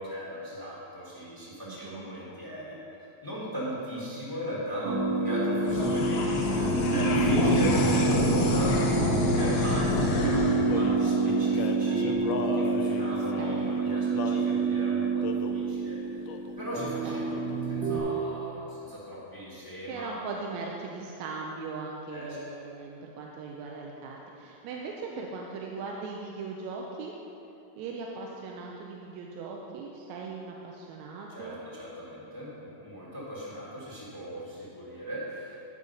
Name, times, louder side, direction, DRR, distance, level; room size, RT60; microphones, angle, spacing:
voice 1, 0.0-2.8 3.2-8.8 9.4-12.2 12.5-16.2 16.6-17.4 17.7-20.2 22.1-22.4 31.3-35.6, equal, 15° left, -7 dB, 0.6 m, -38 dB
voice 2, 1.6-2.1 13.4-13.7 17.0-17.6 19.9-27.1 27.8-31.6, right 4 dB, 80° right, -1 dB, 1.9 m, -39 dB
sound 1, 4.8-18.0, right 4 dB, 45° right, 0.8 m, -28 dB
sound 2, 5.6-12.3, left 2 dB, 65° left, 1.8 m, -28 dB
Male singing, 10.1-14.5 15.2-15.6 16.3-16.5 16.8-17.8, left 5 dB, 85° left, 1.4 m, -36 dB
11.0 x 4.9 x 5.5 m, 2.8 s
omnidirectional pair, 3.3 m